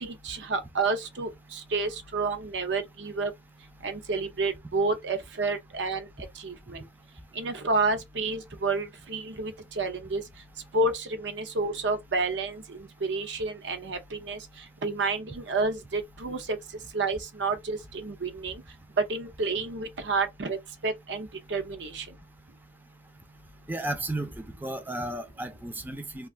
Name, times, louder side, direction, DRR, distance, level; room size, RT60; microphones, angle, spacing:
voice 1, 0.0-3.3 3.8-6.1 6.4-6.8 7.4-10.2 10.7-14.4 14.8-16.6 16.9-18.6 19.1-20.6 20.8-22.1, right 3 dB, 80° right, 0.7 m, -30 dB
voice 2, 23.7-26.3, right 1 dB, 10° right, 0.4 m, -34 dB
2.4 x 2.4 x 3.3 m
head